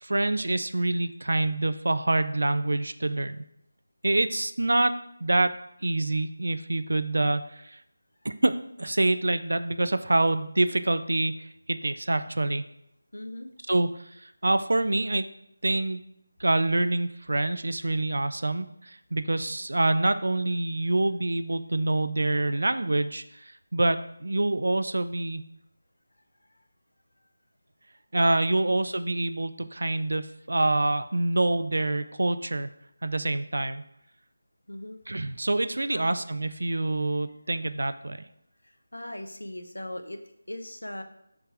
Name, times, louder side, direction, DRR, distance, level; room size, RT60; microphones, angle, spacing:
voice 1, 0.0-3.5 4.0-4.9 5.2-5.5 5.8-7.8 8.2-8.5 8.8-12.6 13.7-15.2 15.6-16.0 16.4-25.4 28.1-32.7 33.0-33.8 35.1-38.2, right 2 dB, 60° right, 11 dB, 0.4 m, -26 dB
voice 2, 13.1-13.5 28.6-28.8 34.7-35.0 35.9-36.2 38.6-41.0, left 1 dB, 75° left, 7 dB, 0.8 m, -39 dB
7.1 x 3.3 x 4.8 m, 0.76 s
figure-of-eight pair, 160°, 0 cm